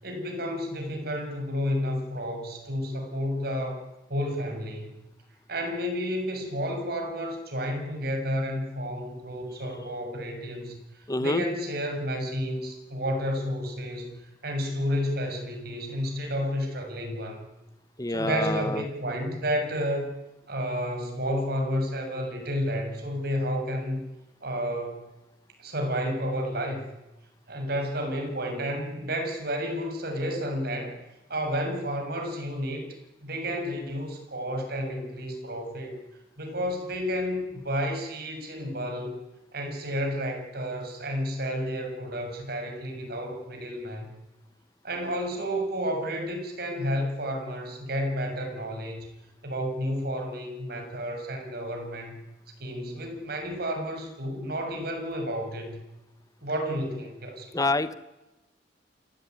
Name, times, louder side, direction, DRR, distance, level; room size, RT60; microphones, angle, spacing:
voice 1, 0.0-3.8 4.1-5.0 5.5-10.8 11.2-14.2 14.4-17.4 18.1-20.1 20.5-24.0 24.4-25.1 25.6-26.8 27.5-31.0 31.3-32.9 33.2-36.0 36.4-39.2 39.5-44.1 44.8-49.1 49.4-52.2 52.6-55.8 56.4-57.6, equal, 60° right, 3 dB, 6.8 m, -31 dB
voice 2, 11.1-11.4 18.0-18.8 57.5-57.9, left 2 dB, 20° left, 13 dB, 1.0 m, -26 dB
28.0 x 16.0 x 9.4 m, 1.0 s
head